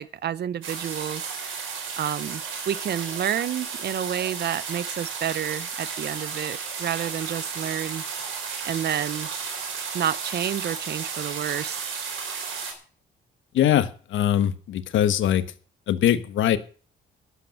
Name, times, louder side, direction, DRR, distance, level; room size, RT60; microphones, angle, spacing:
voice 1, 0.0-8.3 8.6-9.3 9.9-12.1, right 10 dB, 55° right, 0.7 m, -30 dB
sound 1, 0.6-12.7, right 5 dB, 80° right, 4.2 m, -33 dB
voice 2, 13.5-15.4 15.9-16.6, left 11 dB, 75° left, 1.3 m, -22 dB
12.0 x 8.2 x 7.6 m
cardioid pair, 90°, 20 cm